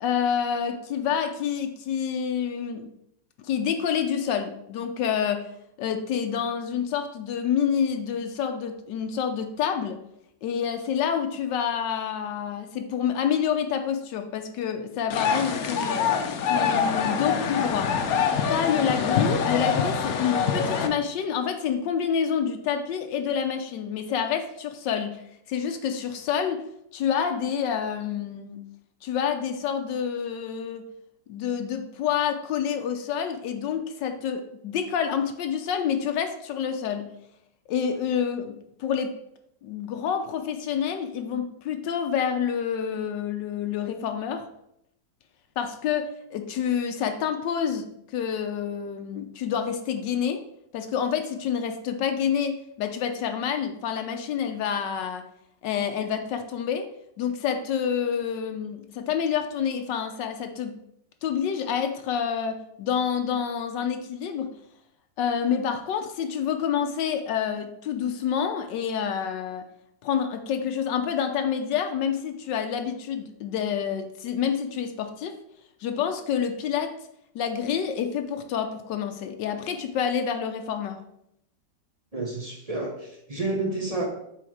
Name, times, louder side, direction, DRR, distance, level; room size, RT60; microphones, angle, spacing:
voice 1, 0.0-2.9 3.4-5.5 5.8-10.0 10.4-16.0 16.5-17.9 18.5-25.2 25.5-26.7 26.9-28.6 29.0-30.9 31.3-37.1 37.7-39.1 39.6-44.5 45.6-50.5 50.7-55.2 55.6-56.9 57.2-60.8 61.2-64.5 65.2-69.7 70.0-75.4 75.8-76.9 77.3-81.0, left 8 dB, 80° left, 6 dB, 1.3 m, -28 dB
sound 1, 15.1-20.9, left 6 dB, 65° left, 1.1 m, -25 dB
voice 2, 82.1-84.1, right 2 dB, 25° right, 1 dB, 0.8 m, -30 dB
7.7 x 3.8 x 4.9 m, 0.77 s
omnidirectional pair, 1.9 m